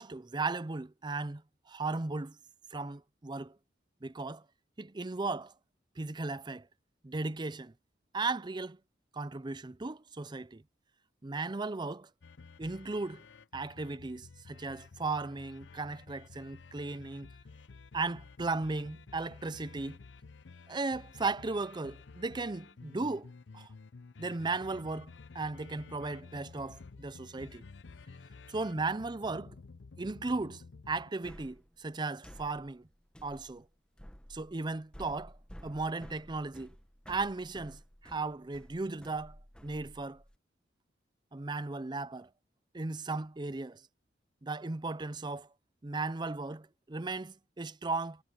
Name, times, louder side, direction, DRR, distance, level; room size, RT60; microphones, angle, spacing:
voice 1, 0.0-1.4 1.7-2.4 2.7-3.5 4.0-4.4 4.8-5.5 6.0-6.7 7.0-7.7 8.1-8.8 9.1-10.6 11.2-12.1 12.6-13.2 13.5-17.3 17.9-20.0 20.7-23.3 23.5-23.7 24.2-27.6 28.5-29.5 30.0-32.8 33.2-33.6 34.3-35.3 35.6-36.7 37.1-39.4 39.6-40.2 41.3-42.3 42.7-43.8 44.4-45.5 45.8-48.2, right 3 dB, 25° right, 0.6 m, -36 dB
sound 1, 12.2-31.1, left 4 dB, 90° left, 0.6 m, -52 dB
sound 2, 31.2-40.4, equal, 5° left, 1.3 m, -53 dB
head